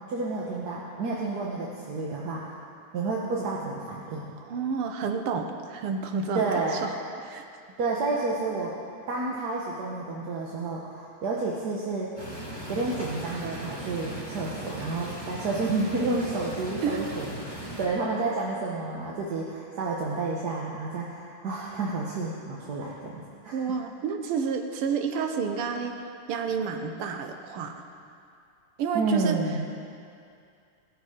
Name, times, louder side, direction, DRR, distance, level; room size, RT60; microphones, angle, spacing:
voice 1, 0.1-2.6 2.9-4.3 6.3-6.9 7.8-8.7 9.1-12.1 12.7-23.6 28.9-29.7, right 3 dB, 55° right, -4 dB, 1.3 m, -30 dB
voice 2, 4.4-6.4 6.7-6.9 7.2-7.4 16.8-17.0 23.5-25.9 26.3-27.8 28.8-29.4, right 6 dB, 85° right, 5 dB, 1.7 m, -30 dB
sound 1, 12.2-17.8, right 1 dB, 30° right, 2.7 m, -38 dB
15.5 x 6.6 x 4.9 m, 2.4 s
omnidirectional pair, 2.4 m